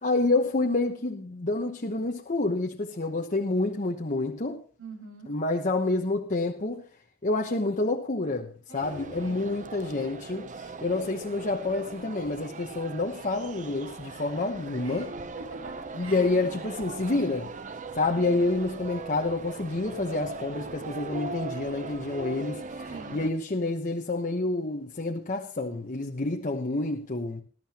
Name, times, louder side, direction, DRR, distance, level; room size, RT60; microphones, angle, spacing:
voice 1, 0.0-4.6 5.3-6.8 7.2-15.1 15.9-17.5 18.0-27.4, left 2 dB, 40° left, 1.0 m, -28 dB
voice 2, 4.8-5.3 8.7-9.4 14.8-15.1 15.5-16.3 22.9-23.2, right 3 dB, 80° right, 5.9 m, -44 dB
sound 1, 8.8-23.3, right 3 dB, 35° right, 0.7 m, -40 dB
20.0 x 12.5 x 3.0 m
head